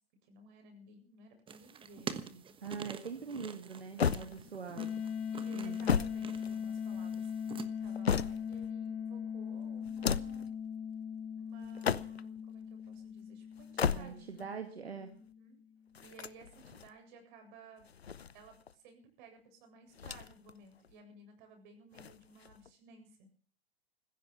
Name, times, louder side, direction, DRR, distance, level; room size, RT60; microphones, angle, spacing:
voice 1, 0.2-2.5 3.9-4.5 5.3-10.5 11.3-14.3 15.2-15.6 16.0-17.8 18.3-23.3, right 3 dB, 50° right, 5 dB, 7.7 m, -57 dB
sound 1, 1.5-7.7, right 7 dB, 15° right, 1.3 m, -47 dB
voice 2, 2.6-5.0 5.5-5.8 13.8-15.1, right 5 dB, 85° right, 5 dB, 2.2 m, -43 dB
sound 2, 4.0-4.8 5.6-7.0 7.6-8.7 9.8-10.5 11.6-12.4 13.6-14.4 15.9-16.9 17.8-18.7 19.9-20.5 20.8-20.9 21.9-22.7, left 7 dB, 90° left, 0.8 m, -35 dB
sound 3, 4.8-15.5, left 7 dB, 40° left, 2.3 m, -40 dB
15.5 x 15.0 x 5.9 m, 0.43 s
hypercardioid pair, 110°, 30 cm